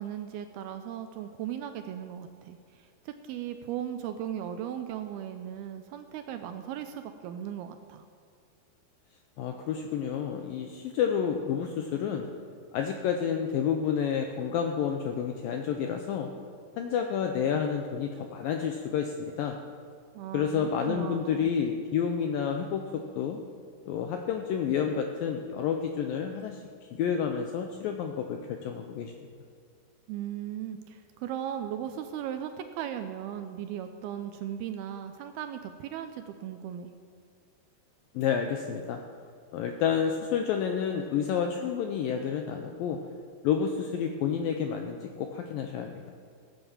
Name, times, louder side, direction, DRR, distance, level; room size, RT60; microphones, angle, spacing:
voice 1, 0.0-8.1 20.1-21.5 30.1-36.9, right 10 dB, 80° right, 8 dB, 2.3 m, -37 dB
voice 2, 9.4-12.3 12.7-16.3 16.8-19.6 20.3-23.4 23.9-26.6 27.0-29.1 38.1-39.0 39.5-43.0 43.4-46.1, left 7 dB, 85° left, 4 dB, 2.0 m, -30 dB
17.0 x 9.0 x 7.2 m, 2.1 s
omnidirectional pair, 5.0 m